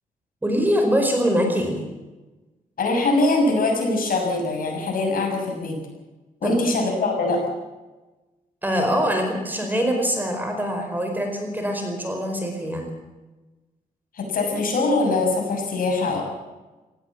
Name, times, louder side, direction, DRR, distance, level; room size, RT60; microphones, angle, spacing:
voice 1, 0.4-1.8 6.4-6.6 8.6-12.9, equal, 10° right, 3 dB, 4.9 m, -23 dB
voice 2, 2.8-5.8 6.4-7.4 14.1-16.2, left 2 dB, 70° left, 1 dB, 6.8 m, -22 dB
18.0 x 16.0 x 8.9 m, 1.1 s
wide cardioid pair, 125°, 15 cm